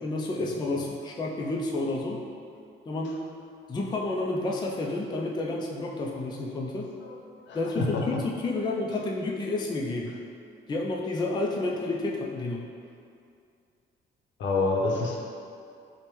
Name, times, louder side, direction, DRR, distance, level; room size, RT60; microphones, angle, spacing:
voice 1, 0.0-2.2 2.9-3.2 3.7-6.9 7.5-10.1 10.7-12.6, left 2 dB, 20° left, -1 dB, 0.3 m, -30 dB
voice 2, 7.5-8.0 14.4-15.2, left 3 dB, 70° left, -2 dB, 0.6 m, -27 dB
4.5 x 2.1 x 3.0 m, 2.4 s
cardioid pair, 90°, 20 cm